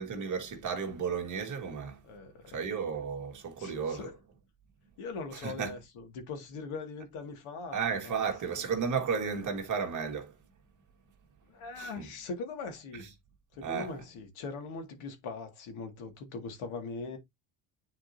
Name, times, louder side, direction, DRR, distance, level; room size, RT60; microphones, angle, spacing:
voice 1, 0.0-2.0 2.4-4.1 5.3-5.8 7.7-10.4 11.8-12.1 13.0-13.1 13.6-13.9, right 6 dB, 40° right, 1.9 m, -33 dB
voice 2, 2.0-2.6 3.6-4.1 5.0-8.1 11.5-13.1 13.5-17.2, left 4 dB, 80° left, 2.2 m, -41 dB
9.7 x 4.3 x 2.7 m
cardioid pair, 160°, 48 cm